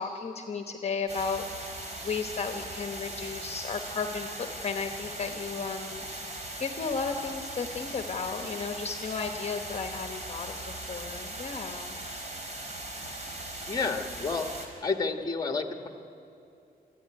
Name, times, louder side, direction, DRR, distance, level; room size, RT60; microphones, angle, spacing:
voice 1, 0.0-6.1 6.6-12.0, left 5 dB, 40° left, 5 dB, 1.1 m, -34 dB
sound 1, 1.1-14.7, right 1 dB, 45° right, 3.3 m, -39 dB
voice 2, 13.7-14.5 14.8-15.9, left 4 dB, 25° left, 5 dB, 1.4 m, -30 dB
23.5 x 13.5 x 9.7 m, 2.7 s
wide cardioid pair, 140°, 16 cm